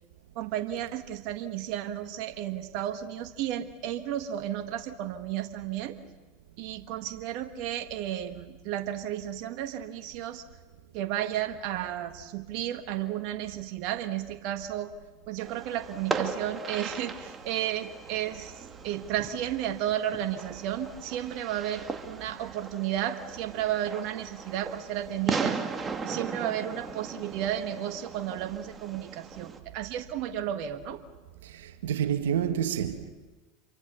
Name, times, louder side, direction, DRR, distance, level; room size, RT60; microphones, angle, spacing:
voice 1, 0.3-6.0 6.6-10.4 10.9-14.9 15.3-25.6 26.0-31.0, right 11 dB, 60° right, 1.5 m, -33 dB
Fireworks, 15.4-29.6, right 4 dB, 25° right, 2.3 m, -38 dB
voice 2, 31.4-33.1, right 9 dB, 80° right, 1.6 m, -29 dB
27.0 x 24.0 x 7.0 m
hypercardioid pair, 90°, 0 cm